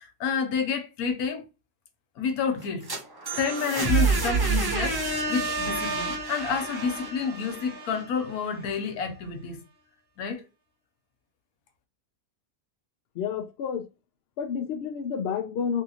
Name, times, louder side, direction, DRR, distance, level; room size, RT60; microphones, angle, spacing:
voice 1, 0.0-1.4 2.2-2.9 3.4-9.6 10.2-10.4, left 6 dB, 90° left, 1.1 m, -29 dB
sound 1, 2.6-8.5, right 4 dB, 30° right, 0.5 m, -28 dB
voice 2, 13.2-13.9 14.4-15.8, left 7 dB, 70° left, 0.6 m, -30 dB
3.3 x 2.7 x 2.7 m
omnidirectional pair, 1.5 m